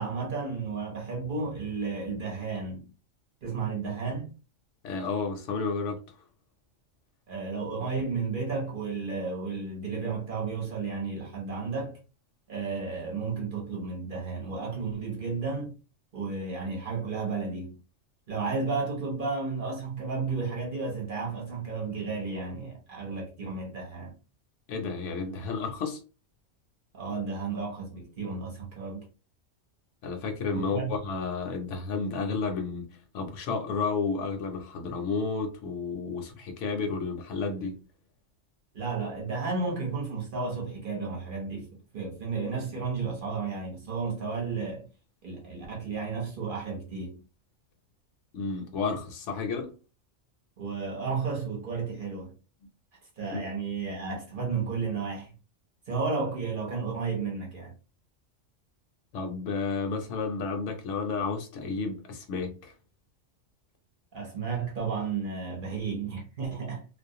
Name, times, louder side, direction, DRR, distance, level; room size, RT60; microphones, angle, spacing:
voice 1, 0.0-2.9 3.4-4.3 7.3-12.0 12.5-15.7 16.1-17.8 18.3-24.1 26.9-29.0 30.5-30.9 38.7-41.7 41.9-44.9 45.2-47.2 50.6-52.3 53.2-55.3 55.9-57.7 64.1-66.9, right 4 dB, 50° right, 0.8 m, -33 dB
voice 2, 4.8-6.0 24.7-26.0 30.0-32.9 33.1-37.7 48.3-49.7 53.3-53.4 59.1-62.7, left 4 dB, 75° left, 0.9 m, -31 dB
2.4 x 2.0 x 2.6 m
omnidirectional pair, 1.3 m